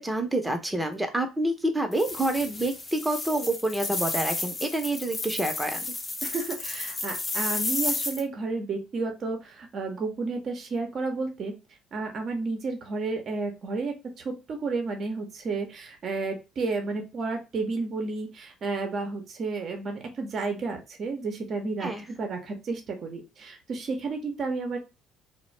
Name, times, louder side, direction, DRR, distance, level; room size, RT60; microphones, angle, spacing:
voice 1, 0.0-5.9 21.8-22.1, right 1 dB, 10° right, 5 dB, 0.7 m, -28 dB
sound 1, 1.9-8.2, left 3 dB, 30° left, 0.6 m, -32 dB
voice 2, 6.2-11.5 11.9-24.8, right 3 dB, 50° right, 4 dB, 0.7 m, -32 dB
2.3 x 2.1 x 3.1 m, 0.27 s
hypercardioid pair, 60°, 0 cm